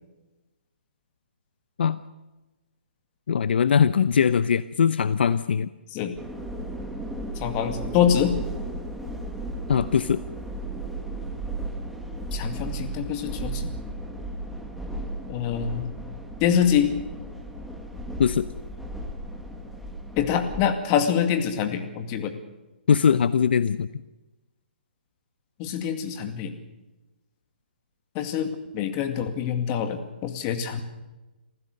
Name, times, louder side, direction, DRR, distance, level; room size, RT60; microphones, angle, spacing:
voice 1, 3.3-5.7 9.7-10.2 18.2-18.5 22.9-23.9, left 7 dB, 65° left, 15 dB, 0.7 m, -21 dB
sound 1, 6.2-20.7, right 1 dB, ahead, 1.9 m, -35 dB
voice 2, 7.4-8.4 12.3-13.7 15.3-15.8 16.4-16.9 20.2-22.3 25.6-26.5 28.1-30.8, left 8 dB, 30° left, 7 dB, 2.2 m, -25 dB
27.0 x 15.5 x 6.7 m, 1.1 s
hypercardioid pair, 150°, 6 cm